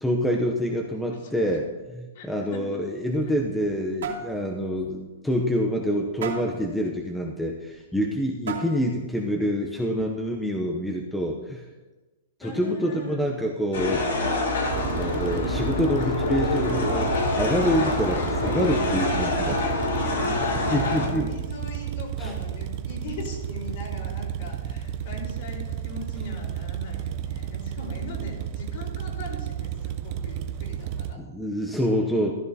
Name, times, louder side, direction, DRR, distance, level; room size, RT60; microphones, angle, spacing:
voice 1, 0.0-11.6 12.4-14.1 14.8-17.1 17.4-19.9 20.7-21.3 22.2-22.3 31.2-32.3, equal, 5° left, 1 dB, 0.7 m, -26 dB
voice 2, 1.1-1.4 2.1-2.7 12.4-13.3 14.7-16.2 19.9-31.2, left 2 dB, 55° left, -2 dB, 4.2 m, -40 dB
sound 1, 3.0-3.8 4.0-4.3 4.8-4.9 5.3-5.4 6.2-6.6 7.7-7.8 8.5-8.9, right 5 dB, 85° right, 2.7 m, -33 dB
sound 2, 13.7-21.1, left 2 dB, 85° left, 4.2 m, -26 dB
sound 3, 14.7-31.1, right 9 dB, 35° right, 0.6 m, -32 dB
14.0 x 12.5 x 2.8 m, 1.2 s
hypercardioid pair, 160°, 0 cm